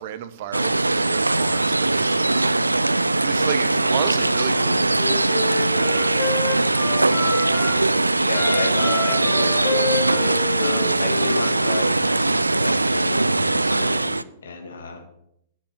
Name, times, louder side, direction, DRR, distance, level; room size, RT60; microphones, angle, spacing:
voice 1, 0.0-4.9, right 10 dB, 45° right, 0.8 m, -32 dB
sound 1, 0.5-14.2, right 2 dB, 80° right, 0.3 m, -20 dB
Wind instrument woodwind instrument, 4.4-7.8 8.3-11.9, left 4 dB, 40° left, 3.2 m, -30 dB
voice 2, 7.6-15.0, left 4 dB, 65° left, 1.8 m, -33 dB
9.7 x 6.7 x 6.5 m
figure-of-eight pair, 105°, 0 cm